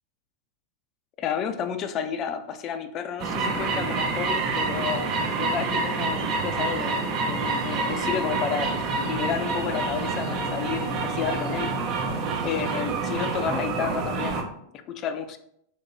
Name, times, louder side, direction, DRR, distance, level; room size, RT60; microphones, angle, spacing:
voice 1, 1.2-5.1 5.4-8.7 9.0-12.0 12.4-14.5 14.9-15.4, left 8 dB, 35° left, 9 dB, 0.3 m, -31 dB
sound 1, 3.2-14.4, right 3 dB, 40° right, 0.5 m, -27 dB
2.9 x 2.7 x 3.9 m, 0.74 s
figure-of-eight pair, 90°, 0 cm